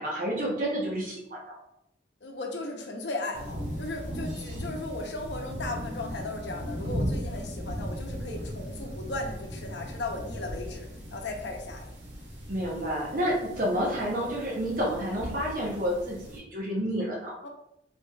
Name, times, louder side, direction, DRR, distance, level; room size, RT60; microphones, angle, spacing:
voice 1, 0.0-1.6 12.5-17.3, equal, 50° right, -3 dB, 0.8 m, -30 dB
voice 2, 2.2-11.9 13.7-13.8 17.4-17.5, left 2 dB, 75° left, 3 dB, 0.7 m, -36 dB
sound 1, 3.3-16.4, equal, 85° right, 1.3 m, -37 dB
4.5 x 3.5 x 2.3 m, 0.82 s
head